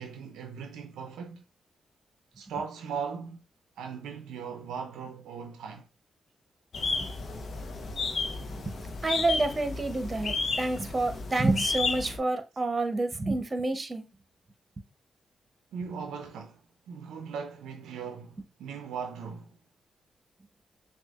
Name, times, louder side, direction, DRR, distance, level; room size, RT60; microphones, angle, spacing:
voice 1, 0.0-1.4 2.4-3.4 3.8-5.9 15.7-16.6 16.9-19.6, right 6 dB, 85° right, 0.4 m, -38 dB
sound 1, 6.7-12.2, left 4 dB, 60° left, 0.7 m, -32 dB
voice 2, 9.0-14.0, right 2 dB, 35° right, 0.8 m, -28 dB
6.1 x 2.3 x 2.4 m
supercardioid pair, 45°, 0 cm